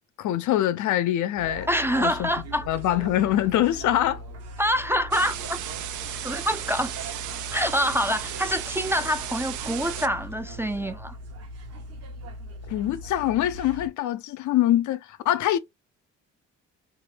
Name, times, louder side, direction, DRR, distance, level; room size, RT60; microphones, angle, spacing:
voice 1, 0.2-1.7 2.0-2.3 2.7-4.2 12.7-15.6, left 13 dB, 75° left, 0.5 m, -24 dB
sound 1, 1.4-13.9, right 1 dB, 55° right, 1.0 m, -40 dB
voice 2, 1.7-2.7 4.6-5.6 6.2-7.1 7.5-11.2, equal, 10° right, 0.4 m, -26 dB
sound 2, 5.1-10.1, right 11 dB, 75° right, 0.5 m, -35 dB
3.2 x 2.1 x 3.2 m
cardioid pair, 90°, 30 cm